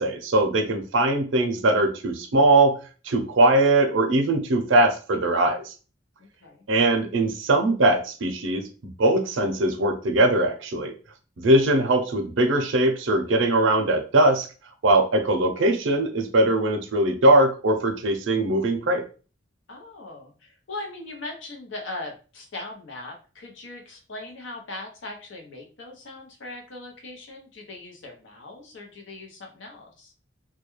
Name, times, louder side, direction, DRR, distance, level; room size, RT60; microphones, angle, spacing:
voice 1, 0.0-2.8 3.0-5.7 6.7-8.7 9.0-10.9 11.4-14.5 14.8-19.0, right 2 dB, 80° right, 6 dB, 0.5 m, -21 dB
voice 2, 6.2-6.6 19.7-30.1, left 2 dB, 70° left, 1 dB, 0.7 m, -39 dB
2.3 x 2.2 x 3.0 m, 0.36 s
head